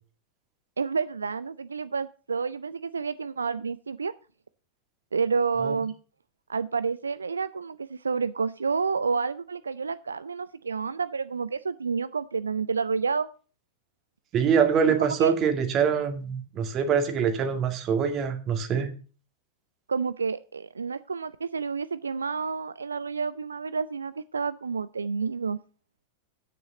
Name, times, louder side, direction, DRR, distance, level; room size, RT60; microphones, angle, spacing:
voice 1, 0.8-4.1 5.1-5.9 6.5-13.3 14.9-15.4 19.9-25.6, right 5 dB, 75° right, 16 dB, 0.4 m, -29 dB
voice 2, 14.3-18.9, right 7 dB, 30° right, 7 dB, 2.1 m, -24 dB
10.0 x 9.3 x 3.8 m, 0.37 s
figure-of-eight pair, 90°, 0 cm